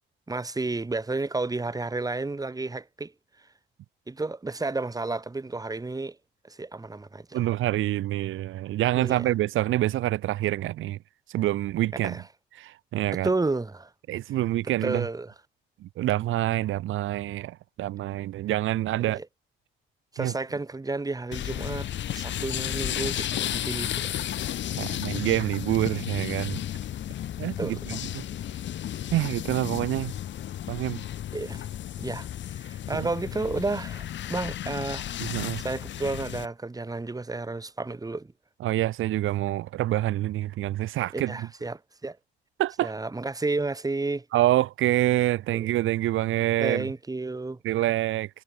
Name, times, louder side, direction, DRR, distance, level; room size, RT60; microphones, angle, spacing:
voice 1, 0.3-3.1 4.1-6.2 6.4-7.4 8.9-9.3 12.0-12.2 13.2-13.9 14.6-15.3 19.0-19.3 20.1-24.2 27.6-28.0 31.3-31.7 32.0-32.3 32.5-38.3 41.1-42.2 42.8-44.2 45.5-45.7 46.6-47.6, right 3 dB, 20° right, 2.9 m, -32 dB
voice 2, 7.3-11.0 11.3-12.2 12.6-13.3 14.1-15.0 15.8-19.2 20.2-20.3 24.8-26.6 27.4-28.2 29.1-30.1 30.7-31.0 32.9-33.1 35.2-35.6 38.6-41.3 42.6-42.9 44.3-46.9 47.6-48.3, right 14 dB, 85° right, 2.7 m, -26 dB
sound 1, 21.3-36.5, left 11 dB, 65° left, 1.5 m, -33 dB
cardioid pair, 90°, 20 cm